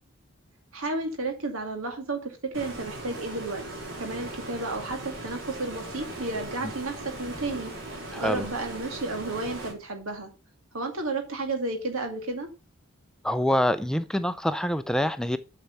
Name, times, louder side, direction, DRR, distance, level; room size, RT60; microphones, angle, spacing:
voice 1, 0.7-3.6 4.0-7.7 8.1-10.3 10.7-12.5, right 2 dB, 85° right, 2.3 m, -32 dB
Stream, 2.5-9.7, right 1 dB, 65° right, 3.6 m, -39 dB
voice 2, 8.1-8.5 13.2-15.4, equal, 5° left, 0.5 m, -25 dB
7.9 x 6.6 x 5.6 m
head